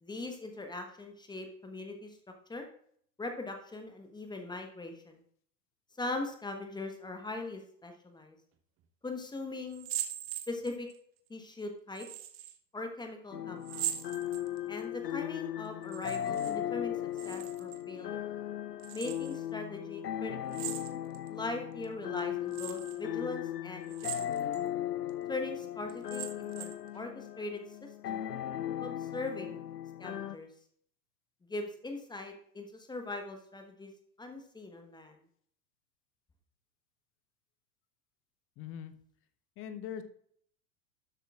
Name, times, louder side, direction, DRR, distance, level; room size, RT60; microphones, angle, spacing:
voice 1, 0.0-2.2 2.5-2.7 3.2-5.2 6.0-8.4 9.0-9.9 10.5-10.9 11.3-12.1 12.7-14.0 14.7-17.0 17.2-18.2 18.9-20.6 21.3-24.5 25.3-28.2 28.8-29.6 30.0-30.5 31.5-33.9 34.2-35.2, left 2 dB, 10° left, 4 dB, 1.1 m, -40 dB
sound 1, 9.7-11.0 12.0-12.6 13.6-14.8 15.8-16.6 16.8-17.8 18.8-19.4 20.5-21.3 21.8-21.9 22.5-23.0 23.8-24.6 25.1-25.2 25.9-26.9, right 12 dB, 25° right, 0.8 m, -40 dB
sound 2, 13.3-30.4, left 11 dB, 75° left, 0.7 m, -37 dB
voice 2, 38.6-39.0 39.6-40.0, left 9 dB, 25° left, 10 dB, 0.8 m, -41 dB
12.5 x 7.9 x 2.4 m, 0.63 s
figure-of-eight pair, 90°, 49 cm